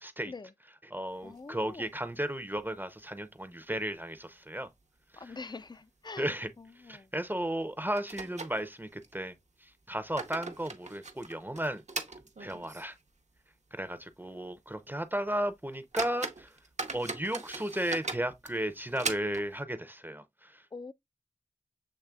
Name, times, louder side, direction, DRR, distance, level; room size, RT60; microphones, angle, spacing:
voice 1, 0.0-0.3 0.9-4.7 5.1-5.3 6.2-6.5 6.8-9.3 9.6-11.8 12.4-13.0 13.7-16.5 16.9-20.6, right 1 dB, 15° right, 0.6 m, -34 dB
voice 2, 1.2-1.9 5.2-6.3 6.6-7.1 20.7-20.9, left 4 dB, 35° left, 0.3 m, -44 dB
sound 1, 1.2-2.2 2.5-2.6 3.0-3.1 3.7-4.2 4.5-4.6 5.2-5.4 5.7-5.9 7.2-7.3 8.0-9.2 9.8-13.0 13.4-13.5 14.0-14.1 14.6-14.7 15.3-15.4 15.7-19.6, right 3 dB, 65° right, 0.7 m, -40 dB
7.5 x 3.1 x 2.3 m
wide cardioid pair, 55°, 13 cm